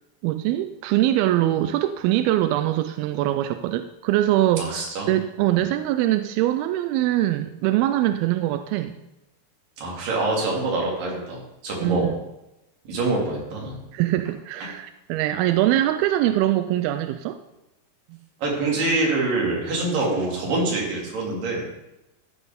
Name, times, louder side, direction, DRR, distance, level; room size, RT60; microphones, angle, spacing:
voice 1, 0.2-8.9 11.8-12.1 13.9-17.4, right 14 dB, 85° right, 9 dB, 2.2 m, -23 dB
voice 2, 4.6-5.1 9.8-12.1 12.9-13.8 14.6-14.7 18.4-21.6, right 2 dB, 60° right, -2 dB, 3.9 m, -25 dB
14.0 x 8.1 x 3.5 m, 0.92 s
omnidirectional pair, 4.7 m